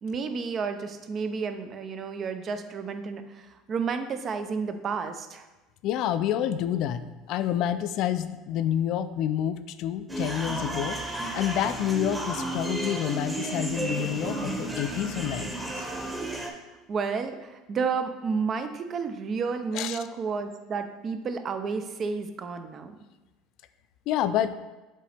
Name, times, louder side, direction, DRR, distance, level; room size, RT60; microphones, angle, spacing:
voice 1, 0.0-5.5 16.9-23.0, right 5 dB, 40° right, 8 dB, 0.6 m, -31 dB
voice 2, 5.8-15.9 19.7-20.0 24.1-24.5, left 11 dB, 60° left, 12 dB, 0.4 m, -28 dB
sound 1, 10.1-16.5, right 2 dB, 10° right, 1.0 m, -32 dB
7.5 x 3.9 x 3.4 m, 1.1 s
supercardioid pair, 105°, 0 cm